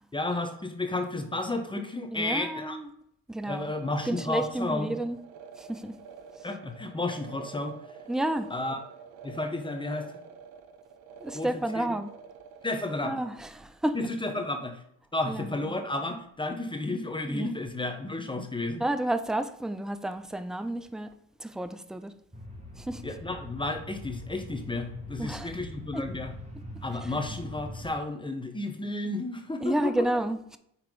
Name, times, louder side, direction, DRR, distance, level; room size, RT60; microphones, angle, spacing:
voice 1, 0.1-2.8 3.5-4.9 6.4-7.8 8.5-8.8 9.2-10.1 11.3-11.5 11.8-11.9 12.6-13.1 13.9-14.8 15.1-18.8 23.0-26.3 26.8-30.0, left 2 dB, 15° left, 1.1 m, -32 dB
voice 2, 2.1-2.9 3.3-3.7 4.1-5.2 5.6-6.0 8.1-8.5 11.2-12.1 13.0-14.0 15.3-15.8 17.2-17.5 18.8-21.1 21.4-22.1 22.8-23.1 25.2-25.6 25.9-26.1 27.0-27.1 29.6-30.6, right 1 dB, ahead, 0.5 m, -31 dB
sound 1, 3.6-12.9, right 6 dB, 90° right, 0.7 m, -48 dB
sound 2, 22.3-27.9, left 1 dB, 20° right, 2.1 m, -42 dB
5.8 x 4.3 x 3.9 m
supercardioid pair, 70°, 34 cm